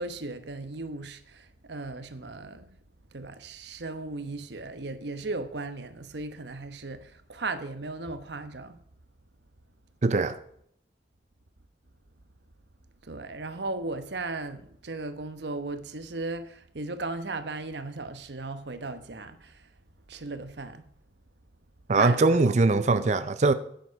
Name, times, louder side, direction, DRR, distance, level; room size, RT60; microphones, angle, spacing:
voice 1, 0.0-2.7 3.1-8.8 13.0-19.7 20.1-20.9 22.0-23.1, right 3 dB, 75° right, 1.0 m, -36 dB
voice 2, 10.0-10.4 21.9-23.5, right 3 dB, 40° right, 0.5 m, -22 dB
9.5 x 9.2 x 4.7 m
head